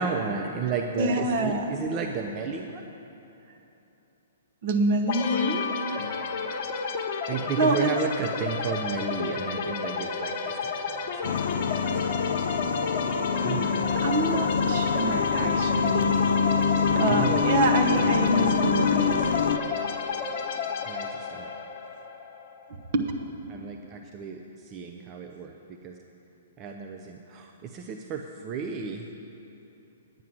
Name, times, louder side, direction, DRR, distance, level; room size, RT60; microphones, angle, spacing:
voice 1, 0.0-2.8 7.3-11.3 11.8-13.9 17.1-17.7 18.3-19.6 20.9-21.5 23.5-25.5 25.8-25.9 26.6-29.1, right 5 dB, 30° right, 3 dB, 0.6 m, -34 dB
voice 2, 0.6-1.9 4.6-5.6 5.9-6.0 7.5-8.0 14.0-16.2 16.9-19.2 22.9-23.1, right 2 dB, 50° right, 4 dB, 1.0 m, -26 dB
sound 1, 5.1-22.7, left 5 dB, 45° left, 1.1 m, -32 dB
sound 2, 11.2-19.6, left 6 dB, 60° left, 0.4 m, -25 dB
9.5 x 9.1 x 6.1 m, 3.0 s
figure-of-eight pair, 120°, 0 cm